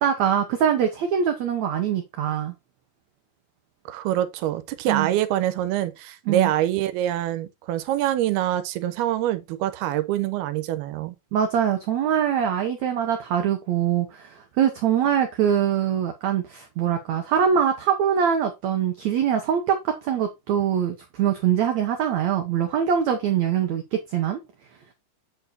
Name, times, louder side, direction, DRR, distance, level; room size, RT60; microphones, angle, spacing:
voice 1, 0.0-2.5 4.9-5.1 6.3-6.5 11.3-24.4, right 8 dB, 65° right, 1.8 m, -23 dB
voice 2, 3.9-11.2, right 12 dB, 90° right, 2.8 m, -25 dB
8.6 x 4.5 x 4.2 m
omnidirectional pair, 4.3 m